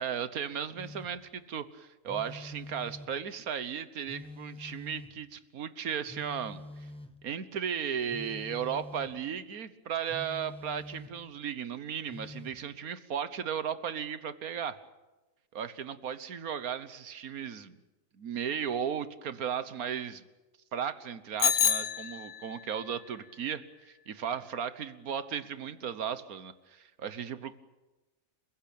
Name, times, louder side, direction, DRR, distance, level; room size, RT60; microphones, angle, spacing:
voice 1, 0.0-6.6 7.2-14.8 15.5-17.8 18.2-20.2 20.7-27.5, right 8 dB, 80° right, 13 dB, 1.6 m, -36 dB
Telephone, 0.8-1.3 2.1-3.3 4.1-5.3 6.1-7.3 8.1-9.2 10.1-11.3 12.1-12.6, left 1 dB, 5° left, 1.6 m, -46 dB
Bicycle bell, 21.4-22.7, left 8 dB, 70° left, 1.4 m, -28 dB
29.0 x 16.0 x 8.6 m, 1.1 s
omnidirectional pair, 1.5 m